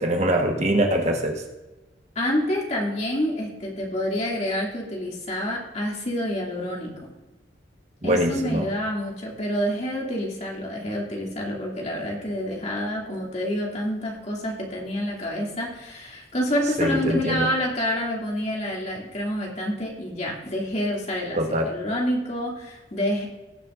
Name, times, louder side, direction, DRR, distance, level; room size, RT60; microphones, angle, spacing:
voice 1, 0.0-1.4 8.0-8.6 16.8-17.5 21.4-21.7, right 1 dB, 35° right, 3 dB, 1.2 m, -23 dB
voice 2, 2.2-7.1 8.0-21.4 21.6-23.3, equal, 35° left, -2 dB, 2.4 m, -28 dB
18.5 x 7.5 x 2.5 m, 1.1 s
head